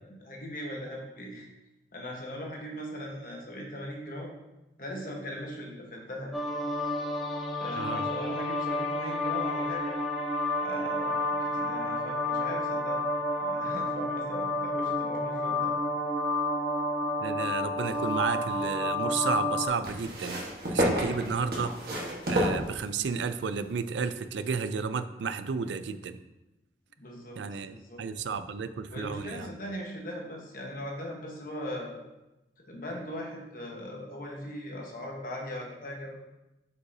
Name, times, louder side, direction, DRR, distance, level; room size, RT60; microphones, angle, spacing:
voice 1, 0.0-1.5 1.9-4.3 4.8-6.3 7.6-10.0 10.6-13.0 13.4-15.8 27.0-27.4 27.7-28.0 28.9-32.0 32.7-36.1, left 1 dB, 50° left, -1 dB, 1.2 m, -39 dB
sound 1, 6.3-19.7, left 1 dB, ahead, 0.7 m, -30 dB
voice 2, 7.8-8.1 17.2-20.4 20.7-21.7 22.3-26.2 27.4-29.5, right 5 dB, 90° right, 11 dB, 0.4 m, -32 dB
sound 2, 17.8-18.7 19.8-23.3 24.2-24.3, equal, 60° right, 1.4 m, -31 dB
7.8 x 5.5 x 2.8 m, 0.97 s
head